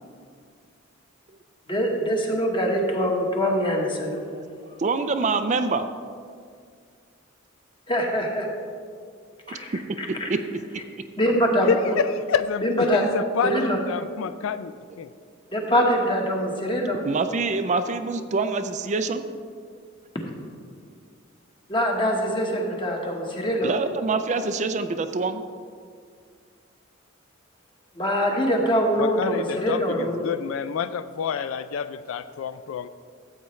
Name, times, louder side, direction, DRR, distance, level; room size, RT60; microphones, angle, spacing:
voice 1, 1.7-4.2 7.9-8.5 9.5-10.3 11.2-11.7 12.6-13.0 13.4-13.8 15.5-17.0 21.7-23.7 28.0-30.3, equal, 25° left, 0 dB, 1.3 m, -24 dB
voice 2, 4.8-5.9 9.5-9.6 10.3-10.4 17.0-19.2 23.6-25.4, right 4 dB, 35° right, 9 dB, 0.4 m, -25 dB
voice 3, 11.7-15.1 29.0-32.9, left 6 dB, 75° left, 12 dB, 0.3 m, -28 dB
14.0 x 8.1 x 3.2 m, 2.1 s
head